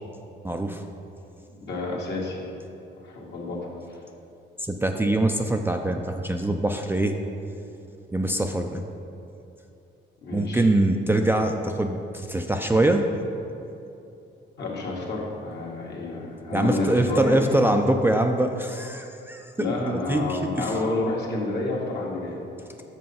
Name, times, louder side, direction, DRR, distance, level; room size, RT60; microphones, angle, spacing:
voice 1, 0.4-0.8 4.6-7.2 8.1-8.8 10.3-13.1 16.5-19.5 19.9-20.7, right 1 dB, 10° right, 4 dB, 0.4 m, -23 dB
voice 2, 1.6-2.5 3.0-3.7 10.2-10.6 14.6-17.5 19.6-22.4, left 2 dB, 60° left, -3 dB, 1.7 m, -29 dB
6.7 x 5.4 x 5.5 m, 2.8 s
cardioid pair, 90°, 20 cm